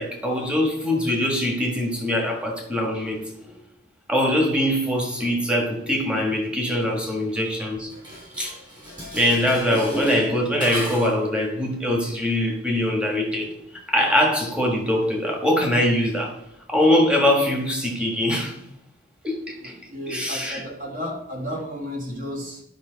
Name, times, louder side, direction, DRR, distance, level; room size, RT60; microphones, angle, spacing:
voice 1, 0.0-3.6 4.1-7.9 8.4-8.5 9.1-13.5 13.9-16.3 16.7-18.5 19.2-19.7 20.1-20.6, left 1 dB, 5° right, 1 dB, 1.5 m, -23 dB
Dishes pots and pans, 7.9-11.3, equal, 20° right, 2.8 m, -33 dB
voice 2, 19.6-22.6, equal, 40° right, 0 dB, 1.9 m, -33 dB
10.5 x 5.4 x 4.0 m, 0.78 s
head